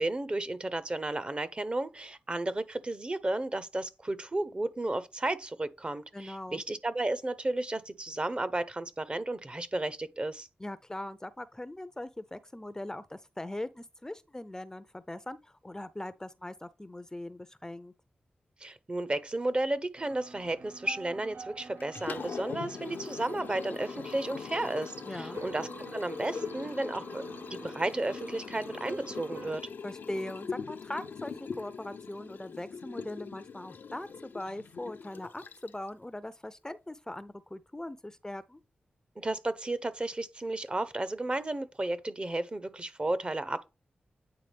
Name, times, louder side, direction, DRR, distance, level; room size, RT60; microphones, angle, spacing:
voice 1, 0.0-10.5 18.6-27.2 27.5-29.6 39.2-43.7, right 2 dB, 30° right, 0.8 m, -33 dB
voice 2, 6.1-6.6 10.6-17.9 25.0-25.4 29.8-38.6, left 1 dB, 15° left, 0.5 m, -40 dB
sound 1, 20.0-29.5, right 4 dB, 65° right, 0.5 m, -48 dB
Liquid, 21.8-35.9, left 5 dB, 70° left, 0.6 m, -41 dB
8.9 x 3.5 x 3.4 m
cardioid pair, 50°, 3 cm